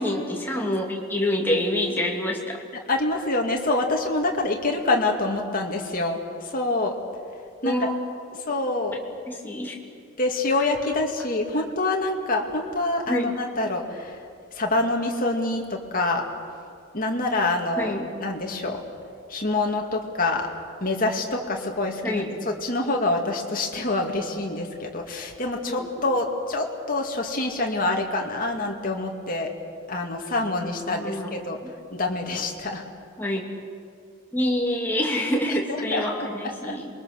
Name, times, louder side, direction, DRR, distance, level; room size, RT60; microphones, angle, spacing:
voice 1, 0.0-2.6 7.6-7.9 8.9-9.0 9.3-9.7 13.1-13.3 17.8-18.1 22.0-22.2 25.7-25.9 30.9-31.3 33.2-33.4 34.3-36.9, left 1 dB, 10° left, -1 dB, 2.5 m, -26 dB
voice 2, 2.9-7.0 7.6-7.7 8.4-9.0 10.2-14.2 14.5-16.3 16.9-17.9 18.2-18.8 19.3-20.5 20.8-29.5 29.9-31.6 31.9-32.8 35.7-36.3 36.6-36.8, left 2 dB, 40° left, 1 dB, 2.3 m, -26 dB
27.0 x 22.5 x 6.6 m, 2.3 s
head